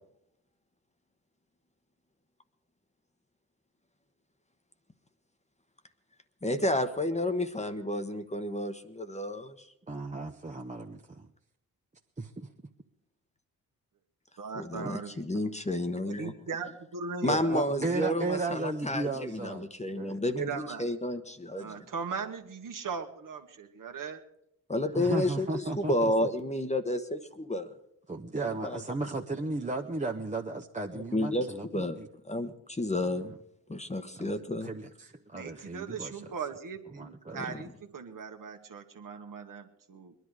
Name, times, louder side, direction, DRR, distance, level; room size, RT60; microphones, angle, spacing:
voice 1, 6.4-9.6 14.6-15.0 15.3-16.3 17.2-21.9 24.7-27.7 28.6-28.8 30.9-31.5 31.7-32.0 32.3-33.3 33.7-34.7, left 1 dB, 15° left, 8 dB, 1.2 m, -31 dB
voice 2, 9.9-11.3 12.2-12.5 14.8-14.9 17.3-19.7 19.9-20.2 24.9-26.3 28.1-32.1 33.0-33.4 34.2-36.2 36.9-37.4, right 3 dB, 20° right, 2 dB, 1.0 m, -35 dB
voice 3, 14.4-15.2 16.0-17.6 20.3-20.9 21.6-24.2 35.3-40.1, right 6 dB, 50° right, 5 dB, 1.6 m, -39 dB
21.0 x 11.0 x 4.9 m, 0.77 s
supercardioid pair, 50°, 40 cm